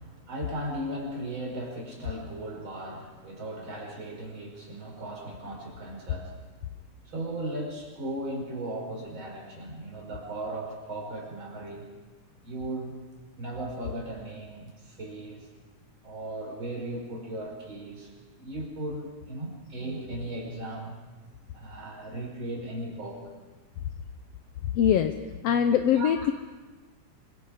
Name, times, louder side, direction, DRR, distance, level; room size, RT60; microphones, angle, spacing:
voice 1, 0.0-6.4 7.1-11.9 12.4-12.9 13.4-15.5 16.0-18.1 18.4-21.0 21.5-23.3 25.9-26.3, right 1 dB, 35° right, -1 dB, 5.7 m, -37 dB
voice 2, 24.7-25.1 25.4-26.3, left 9 dB, 70° left, 7 dB, 1.5 m, -22 dB
26.5 x 24.5 x 5.0 m, 1.3 s
omnidirectional pair, 3.6 m